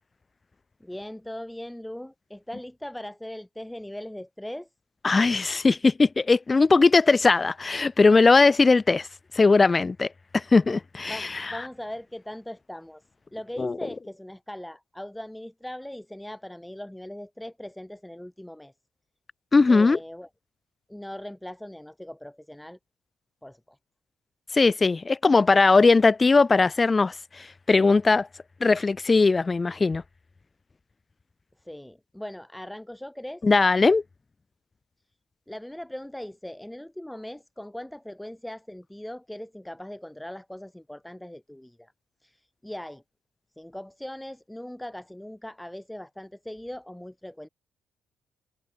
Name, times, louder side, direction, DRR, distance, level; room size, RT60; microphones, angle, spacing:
voice 1, 0.8-4.7 11.1-13.0 13.3-18.7 19.7-20.3 20.9-22.8 23.4-23.8 31.6-33.4 35.5-41.9 42.2-43.0 43.5-47.5, left 1 dB, 5° left, 7.6 m, -39 dB
voice 2, 5.0-9.1 9.3-10.1 10.3-11.5 13.6-13.8 19.5-20.0 24.5-28.3 28.6-30.0 33.4-34.0, left 3 dB, 25° left, 1.2 m, -19 dB
cardioid pair, 90°, 0 cm